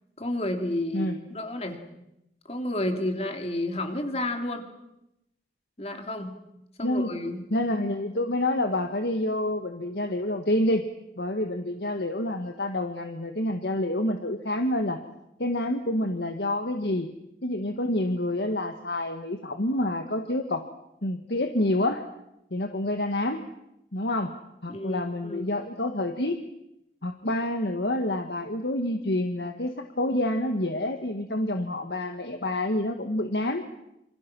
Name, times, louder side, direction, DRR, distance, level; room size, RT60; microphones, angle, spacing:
voice 1, 0.2-1.8 2.5-4.6 5.8-6.3 6.8-7.4 24.7-25.5, left 1 dB, 35° left, 5 dB, 3.2 m, -31 dB
voice 2, 6.8-7.2 7.5-10.8 11.2-15.0 15.4-17.1 17.4-20.6 21.0-22.0 22.5-23.4 23.9-24.3 24.6-26.4 27.0-33.6, left 1 dB, 65° left, 6 dB, 1.7 m, -28 dB
28.0 x 26.5 x 6.2 m, 0.85 s
head